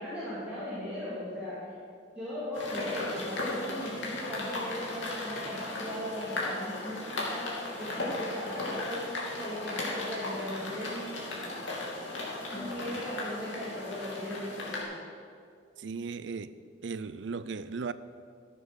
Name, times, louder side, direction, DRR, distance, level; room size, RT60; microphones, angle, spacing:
voice 1, 0.0-1.7 2.1-9.1 9.4-11.5 12.5-14.9, left 1 dB, 5° right, -12 dB, 3.1 m, -38 dB
sound 1, 2.5-14.8, left 2 dB, 80° left, 2.6 m, -36 dB
voice 2, 15.8-16.5 16.8-17.9, right 4 dB, 70° right, 14 dB, 0.5 m, -36 dB
13.5 x 7.2 x 6.4 m, 2.3 s
head